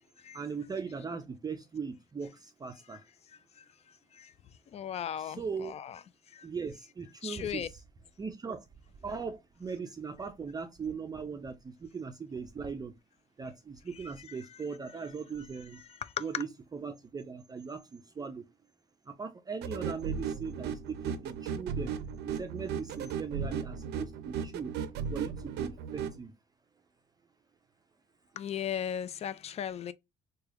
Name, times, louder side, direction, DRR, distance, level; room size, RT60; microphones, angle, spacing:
voice 1, 0.3-3.0 5.2-5.7 6.4-7.8 8.2-8.6 9.0-12.9 13.4-15.8 16.2-18.5 19.1-21.9 22.2-24.7 25.1-26.3, right 5 dB, 25° right, 0.4 m, -39 dB
voice 2, 4.7-6.0 6.3-6.5 7.2-7.7 14.3-14.4 16.0-16.4 28.4-29.9, left 9 dB, 40° left, 0.4 m, -36 dB
sound 1, 19.6-26.2, right 7 dB, 80° right, 0.5 m, -36 dB
3.2 x 2.3 x 3.6 m
cardioid pair, 110°, 17 cm